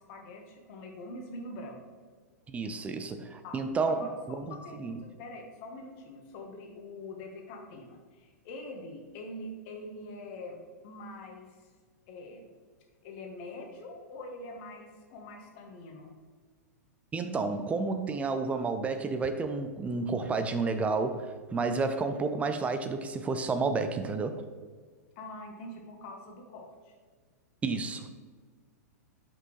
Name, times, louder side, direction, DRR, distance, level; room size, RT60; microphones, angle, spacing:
voice 1, 0.0-1.8 3.4-3.6 3.9-11.6 12.1-12.5 13.0-16.2 25.2-26.9, left 2 dB, 45° left, 2 dB, 1.2 m, -44 dB
voice 2, 2.5-5.0 17.1-24.3 27.6-28.1, right 4 dB, 15° right, 8 dB, 0.5 m, -31 dB
5.9 x 5.6 x 3.0 m, 1.5 s
figure-of-eight pair, 105°, 9 cm